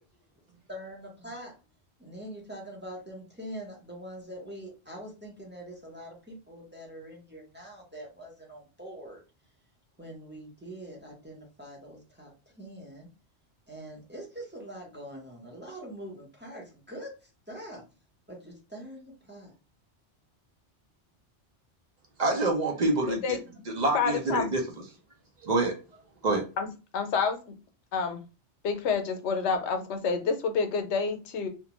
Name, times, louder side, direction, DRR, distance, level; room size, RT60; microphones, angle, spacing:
voice 1, 0.7-1.5 2.0-9.2 10.0-13.1 13.7-17.8 18.3-19.5, right 1 dB, 10° right, 0.7 m, -44 dB
voice 2, 22.2-23.4 23.7-24.6 25.4-25.8 26.2-26.5, right 2 dB, 50° right, 0.6 m, -26 dB
voice 3, 23.9-24.4 26.6-26.7 26.9-27.4 27.9-28.2 28.6-31.5, left 5 dB, 85° left, 0.9 m, -28 dB
2.5 x 2.2 x 2.9 m
omnidirectional pair, 1.2 m